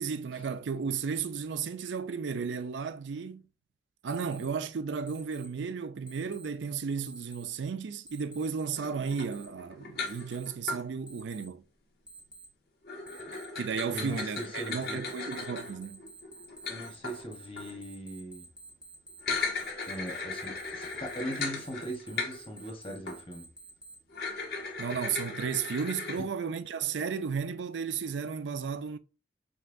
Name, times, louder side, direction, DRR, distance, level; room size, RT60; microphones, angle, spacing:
voice 1, 0.0-3.4 4.0-11.6 13.6-16.0 24.8-29.0, right 6 dB, 90° right, 0.4 m, -34 dB
Alarm, 4.1-4.5 5.1-5.5 6.1-6.5 7.1-7.5 8.1-8.5 9.1-9.5 10.1-10.5 11.1-11.5 12.1-12.5 13.1-13.5 14.1-24.0, right 3 dB, 5° right, 0.6 m, -50 dB
sound 1, 8.8-10.8 12.8-17.8 19.1-22.7 23.1-23.2 24.1-26.2, left 3 dB, 55° left, 1.2 m, -37 dB
voice 2, 13.9-15.0 16.7-18.5 19.9-23.5 26.2-26.3, right 1 dB, 30° left, 1.1 m, -40 dB
5.3 x 2.8 x 2.6 m
head